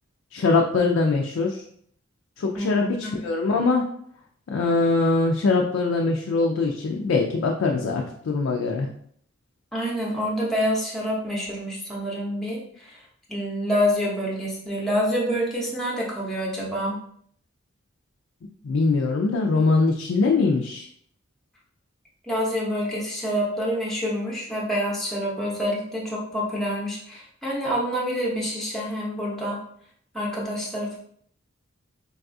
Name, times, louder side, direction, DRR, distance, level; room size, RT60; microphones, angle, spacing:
voice 1, 0.3-1.6 2.4-3.8 4.5-8.9 18.6-20.9, left 3 dB, 75° left, 1 dB, 0.4 m, -22 dB
voice 2, 2.5-3.2 9.7-13.0 13.3-17.0 22.3-29.6 30.1-31.0, equal, ahead, -5 dB, 0.6 m, -27 dB
3.9 x 2.3 x 2.6 m, 0.64 s
head